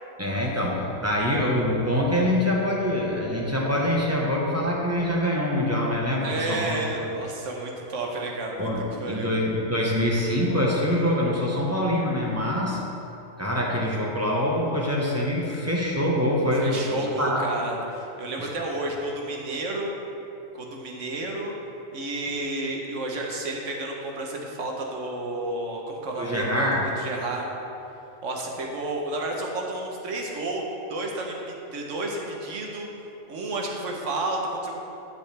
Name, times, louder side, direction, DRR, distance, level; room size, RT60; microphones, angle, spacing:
voice 1, 0.2-6.8 8.6-12.8 13.4-17.4 18.4-18.5 26.2-26.8, left 1 dB, 15° right, -3 dB, 1.1 m, -25 dB
voice 2, 6.2-9.3 16.6-19.9 20.5-21.5 21.9-26.7 27.0-27.5 28.2-30.6 30.9-31.4 31.7-32.9 33.3-34.8, right 2 dB, 70° right, 0 dB, 1.4 m, -31 dB
11.5 x 6.9 x 3.4 m, 2.9 s
omnidirectional pair, 1.3 m